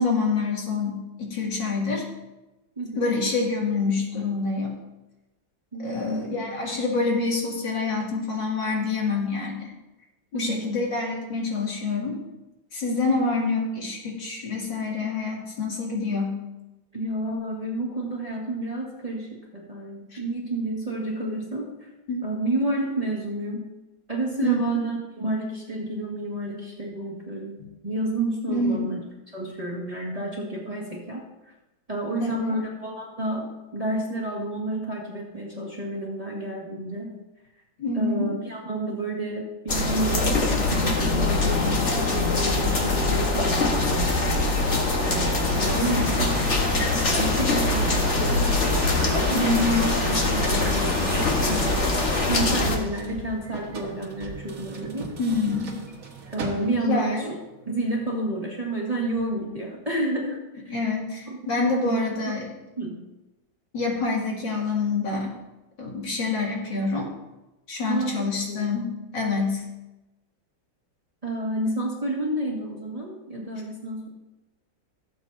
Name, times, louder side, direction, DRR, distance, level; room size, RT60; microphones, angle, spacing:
voice 1, 0.0-2.0 2.9-4.8 5.8-9.7 10.3-12.2 12.7-16.4 20.1-20.2 22.1-22.3 24.4-24.6 28.5-28.8 32.2-32.6 37.8-38.3 45.7-46.0 49.3-49.8 55.2-55.7 56.8-57.3 60.7-62.5 63.7-65.3 65.8-67.1 67.7-69.6, left 3 dB, 65° left, -3 dB, 3.0 m, -26 dB
voice 2, 5.7-6.4 10.3-10.8 13.1-13.3 16.9-21.9 22.2-23.7 24.1-29.0 29.3-31.2 31.9-37.1 37.9-44.6 45.5-46.8 47.2-48.5 49.3-51.7 52.2-55.1 56.3-57.3 57.6-60.8 61.3-61.4 61.8-62.3 62.8-63.0 67.9-68.7 71.2-74.1, right 1 dB, 20° right, -3 dB, 1.7 m, -30 dB
sound 1, 39.7-52.8, left 3 dB, 40° left, 1.5 m, -23 dB
sound 2, 42.5-57.0 57.6-58.1, right 3 dB, 45° right, 1.8 m, -36 dB
17.0 x 8.3 x 2.7 m, 1.0 s
omnidirectional pair, 2.1 m